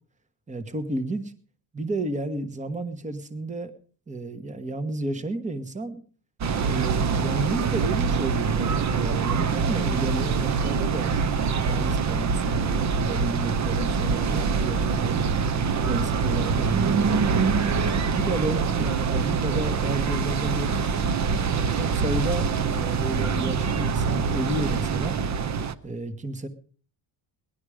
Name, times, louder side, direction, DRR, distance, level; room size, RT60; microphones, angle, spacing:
voice 1, 0.5-1.3 1.7-3.7 4.1-6.0 6.6-11.1 11.6-15.3 15.8-17.4 18.1-21.1 21.7-25.2 25.8-26.5, right 2 dB, 15° right, 8 dB, 1.1 m, -32 dB
sound 1, 6.4-25.7, right 5 dB, 35° right, 0.7 m, -24 dB
18.0 x 11.5 x 4.9 m, 0.42 s
cardioid pair, 135°, 50 cm